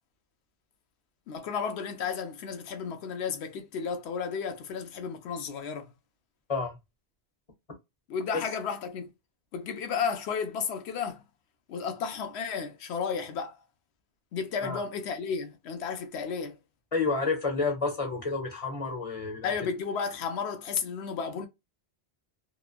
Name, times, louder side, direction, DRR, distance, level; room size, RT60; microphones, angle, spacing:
voice 1, 1.3-5.9 8.1-9.1 9.5-11.2 11.7-13.6 14.3-16.6 19.4-21.5, left 6 dB, 75° left, 0.8 m, -33 dB
voice 2, 16.9-19.5, left 4 dB, 35° left, 0.8 m, -30 dB
2.9 x 2.1 x 2.3 m
omnidirectional pair, 1.1 m